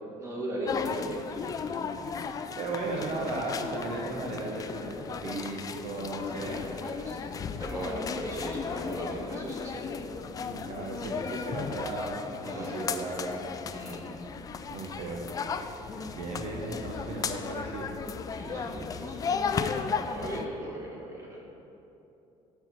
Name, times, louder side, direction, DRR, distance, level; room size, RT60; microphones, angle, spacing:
voice 1, 0.1-1.6 6.4-7.2 7.6-9.9 12.4-12.8 13.7-14.1 18.3-21.4, equal, 25° right, -4 dB, 2.0 m, -38 dB
sound 1, 0.7-20.5, left 5 dB, 30° left, 0.4 m, -35 dB
voice 2, 2.3-6.6 10.5-13.4 14.7-15.3 15.6-17.9 18.5-18.9, right 2 dB, 55° right, -2 dB, 0.9 m, -36 dB
13.0 x 4.5 x 4.1 m, 2.9 s
cardioid pair, 130°, 13 cm